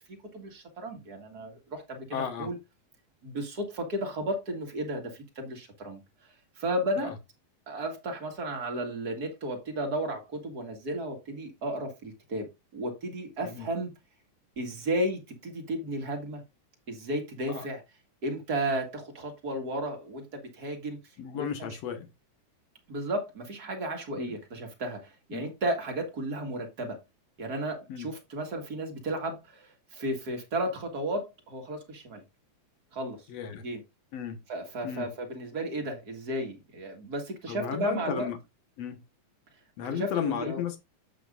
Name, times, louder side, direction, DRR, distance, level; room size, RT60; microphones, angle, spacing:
voice 1, 0.3-2.6 3.2-6.0 6.6-7.1 7.7-12.5 12.7-13.9 14.6-16.4 16.9-17.8 18.2-21.0 21.3-21.7 22.9-27.0 27.4-32.2 32.9-33.2 33.6-33.8 34.5-38.3 39.9-40.6, right 1 dB, 35° right, 1.6 m, -33 dB
voice 2, 2.1-2.5 7.0-7.1 13.4-13.7 17.5-17.7 21.2-22.1 24.2-24.4 25.3-25.5 27.9-28.1 33.3-33.6 34.1-34.4 34.8-35.1 37.5-38.4 38.8-39.0 39.8-40.8, left 8 dB, 60° left, 2.0 m, -34 dB
9.1 x 7.8 x 2.5 m
omnidirectional pair, 4.0 m